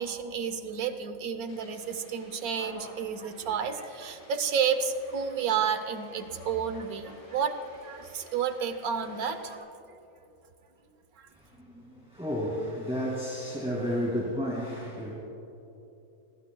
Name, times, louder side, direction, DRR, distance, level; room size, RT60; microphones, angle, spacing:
voice 1, 0.0-7.5 7.8-9.7, right 7 dB, 80° right, 9 dB, 1.4 m, -31 dB
sound 1, 1.5-9.6, left 1 dB, 75° left, 3.8 m, -52 dB
voice 2, 11.3-15.1, equal, 5° right, -5 dB, 2.3 m, -32 dB
25.0 x 21.0 x 2.3 m, 3.0 s
omnidirectional pair, 1.5 m